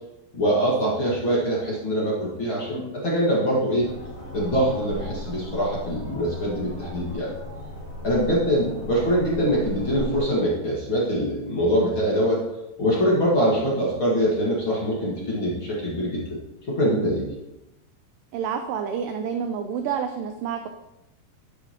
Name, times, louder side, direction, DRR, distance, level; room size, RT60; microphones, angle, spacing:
voice 1, 0.3-3.9 4.3-7.3 8.0-12.4 12.8-16.4 16.7-17.3, equal, 45° left, -5 dB, 1.9 m, -23 dB
sound 1, 3.8-10.2, left 1 dB, 70° left, 4.9 m, -36 dB
voice 2, 18.3-20.7, right 7 dB, 85° right, 6 dB, 1.9 m, -29 dB
11.0 x 8.0 x 2.9 m, 0.94 s
omnidirectional pair, 4.5 m